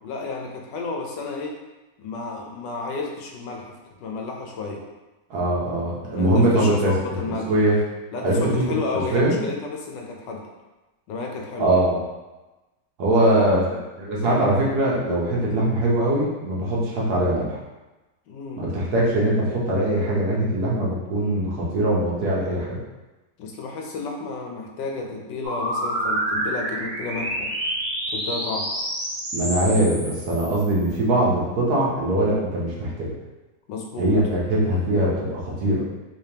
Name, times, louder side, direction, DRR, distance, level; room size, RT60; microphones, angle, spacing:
voice 1, 0.0-1.5 2.0-3.7 4.0-4.8 6.1-7.5 8.1-10.4 11.1-11.8 13.1-13.6 18.3-18.6 23.4-27.5 28.1-28.7 33.7-34.1, left 3 dB, 85° left, 1 dB, 1.3 m, -31 dB
voice 2, 5.3-6.9 7.3-7.8 8.2-8.7 9.1-9.4 11.6-12.0 13.0-13.6 14.0-17.6 18.6-22.8 29.3-33.1 34.0-35.8, right 1 dB, 65° right, -4 dB, 1.3 m, -22 dB
sound 1, 25.4-30.9, right 1 dB, 40° right, 0.7 m, -28 dB
3.4 x 3.3 x 2.8 m, 1.1 s
omnidirectional pair, 1.9 m